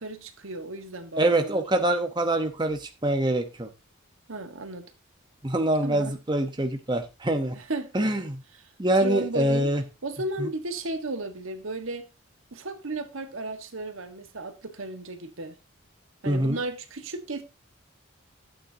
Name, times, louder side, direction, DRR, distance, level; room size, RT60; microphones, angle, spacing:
voice 1, 0.0-1.6 4.3-4.9 5.8-6.2 7.5-7.9 9.0-9.7 10.0-12.0 12.5-15.6 16.2-17.4, right 2 dB, 75° right, 1.4 m, -34 dB
voice 2, 1.2-3.7 5.4-7.5 7.9-8.4 8.8-9.8 10.4-10.5 16.3-16.6, right 1 dB, 20° right, 0.9 m, -25 dB
12.5 x 8.8 x 2.8 m
head